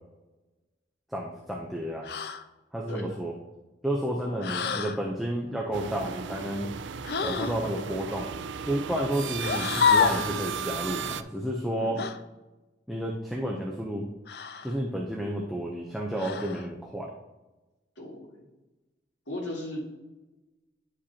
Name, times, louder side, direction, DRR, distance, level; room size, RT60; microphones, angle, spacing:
voice 1, 1.1-2.1 2.7-3.3 3.8-6.7 7.2-8.3 8.6-12.0 12.9-14.1 14.6-17.1, right 1 dB, ahead, -3 dB, 0.6 m, -31 dB
sound 1, 2.0-2.4 4.4-5.0 7.0-7.6 9.4-10.3 12.0-12.2 14.3-14.8 16.2-16.7, left 6 dB, 55° left, 0.4 m, -27 dB
voice 2, 2.9-3.2 4.2-4.4 7.3-7.7 11.7-12.1 18.0-18.5 19.3-19.8, left 1 dB, 80° left, -4 dB, 2.4 m, -38 dB
sound 2, 5.7-11.2, right 6 dB, 80° right, 0.4 m, -35 dB
10.0 x 5.1 x 2.8 m, 1.1 s
head